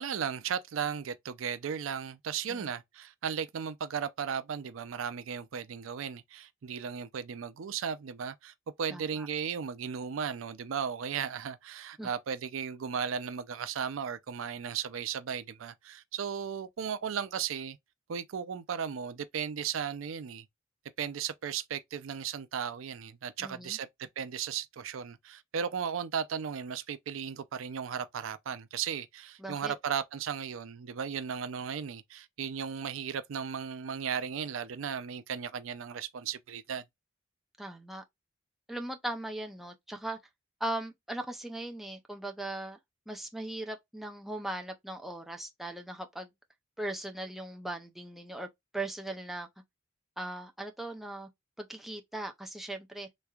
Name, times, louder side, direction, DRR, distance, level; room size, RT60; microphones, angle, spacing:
voice 1, 0.0-17.8 18.1-20.5 21.0-36.8, right 7 dB, 85° right, 0.4 m, -36 dB
voice 2, 8.9-9.3 12.0-12.1 23.4-23.8 29.4-29.7 37.6-38.0 38.7-40.2 40.6-42.8 43.1-46.3 46.8-48.5 48.7-49.5 50.2-51.3 51.6-53.1, right 1 dB, ahead, 0.5 m, -39 dB
3.4 x 3.1 x 2.3 m
head